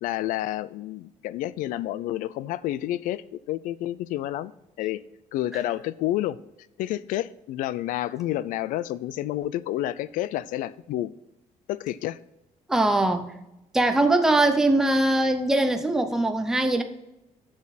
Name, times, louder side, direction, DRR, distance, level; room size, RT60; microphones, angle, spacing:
voice 1, 0.0-4.5 4.8-5.0 5.3-6.4 6.8-11.1 11.7-12.2, left 14 dB, 85° left, 0.4 m, -29 dB
voice 2, 12.7-13.3 13.7-16.8, right 2 dB, 5° right, 0.6 m, -21 dB
10.5 x 6.5 x 4.1 m
cardioid pair, 180°, 13 cm